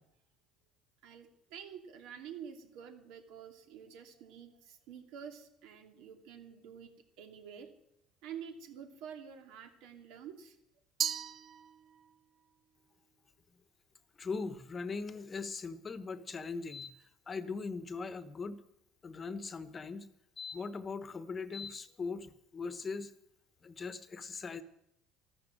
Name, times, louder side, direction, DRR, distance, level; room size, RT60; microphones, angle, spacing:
voice 1, 1.0-7.7 8.2-10.6, right 8 dB, 75° right, 6 dB, 2.6 m, -48 dB
Glass, 11.0-12.2, right 8 dB, 45° right, 0.5 m, -37 dB
voice 2, 14.2-16.9 17.3-18.6 19.0-20.1 20.4-23.1 23.6-24.6, left 4 dB, 25° left, 13 dB, 1.1 m, -40 dB
13.5 x 13.0 x 7.7 m, 0.77 s
cardioid pair, 125°, 0 cm